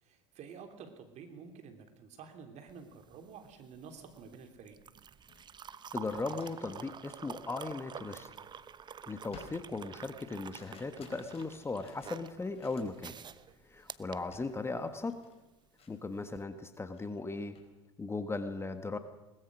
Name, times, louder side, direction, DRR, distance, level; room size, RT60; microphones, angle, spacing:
voice 1, 0.0-4.8, right 6 dB, 50° right, 6 dB, 3.3 m, -50 dB
sound 1, 2.7-15.0 16.2-16.4, right 7 dB, 30° right, 0.9 m, -48 dB
sound 2, 4.7-4.8 5.2-8.8 9.3-13.2 13.5-13.8 14.3-14.6 14.8-16.5 16.8-17.7, left 5 dB, 40° left, 4.4 m, -58 dB
voice 2, 5.9-8.3 9.1-13.1 13.7-15.1 15.9-17.5 18.0-19.0, left 3 dB, 15° left, 9 dB, 1.6 m, -37 dB
21.5 x 20.0 x 6.4 m, 1.1 s
hypercardioid pair, 75°, 15 cm